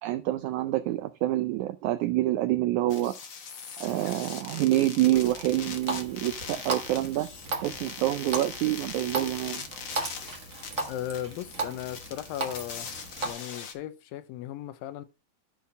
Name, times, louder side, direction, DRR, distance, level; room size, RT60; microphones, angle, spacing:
voice 1, 0.0-3.1 3.8-7.3 7.6-9.7, right 15 dB, 85° right, 1.7 m, -27 dB
sound 1, 2.9-13.7, left 6 dB, 70° left, 1.1 m, -41 dB
Water tap faucet, 5.1-13.3, right 3 dB, 55° right, 0.8 m, -37 dB
voice 2, 10.9-12.9 13.2-15.1, left 12 dB, 85° left, 2.5 m, -36 dB
11.0 x 4.3 x 5.2 m
omnidirectional pair, 4.0 m